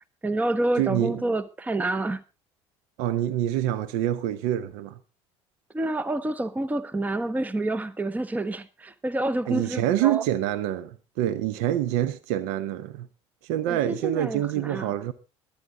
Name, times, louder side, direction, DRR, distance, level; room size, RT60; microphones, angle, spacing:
voice 1, 0.2-2.2 5.7-10.2 13.7-15.0, right 2 dB, 10° right, 0.8 m, -28 dB
voice 2, 0.8-1.2 3.0-5.0 9.5-13.1 13.4-15.1, right 12 dB, 60° right, 0.9 m, -26 dB
23.0 x 8.8 x 3.7 m
figure-of-eight pair, 65°, 15 cm